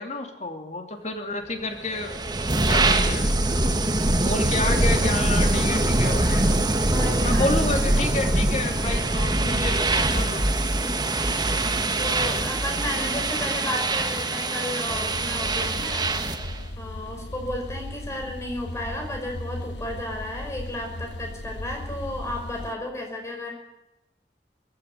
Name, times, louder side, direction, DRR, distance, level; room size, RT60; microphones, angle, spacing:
voice 1, 0.0-2.2 2.5-3.3 4.2-6.6 7.2-10.5, left 2 dB, 40° left, 4 dB, 2.9 m, -30 dB
sound 1, 1.9-16.5, right 2 dB, 25° right, 1.5 m, -23 dB
voice 2, 6.8-7.6 10.8-16.1 16.8-23.5, left 1 dB, 15° left, 2 dB, 5.8 m, -33 dB
sound 2, 14.9-22.7, left 1 dB, 85° left, 1.2 m, -36 dB
20.0 x 15.5 x 9.7 m, 0.90 s
head